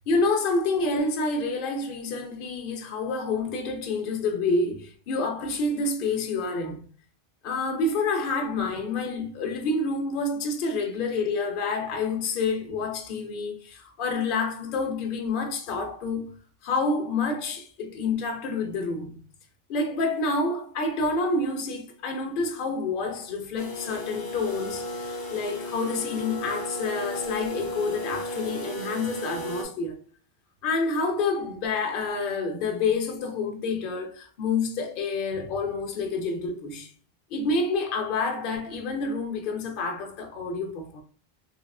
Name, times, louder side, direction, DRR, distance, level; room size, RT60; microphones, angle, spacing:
voice 1, 0.1-6.8 7.4-16.3 16.6-19.2 19.7-30.0 30.6-36.9 37.3-41.0, left 3 dB, 60° left, 0.7 m, -28 dB
sound 1, 23.6-29.6, equal, 30° left, 0.4 m, -34 dB
3.4 x 2.4 x 2.2 m
omnidirectional pair, 1.1 m